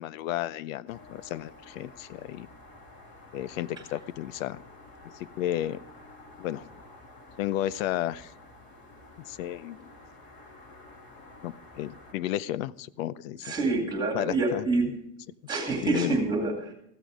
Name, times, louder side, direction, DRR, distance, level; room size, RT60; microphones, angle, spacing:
voice 1, 0.0-2.5 3.3-4.6 5.4-5.8 6.4-6.7 7.4-8.3 9.3-9.9 11.4-13.5 14.1-14.7 15.8-16.2, left 13 dB, 75° left, 19 dB, 0.7 m, -32 dB
sound 1, 0.9-12.1, left 2 dB, 30° left, 2.7 m, -51 dB
voice 2, 13.4-14.9 15.5-16.7, right 3 dB, 10° right, 3 dB, 2.3 m, -27 dB
15.0 x 13.5 x 5.0 m, 0.74 s
supercardioid pair, 180°, 40 cm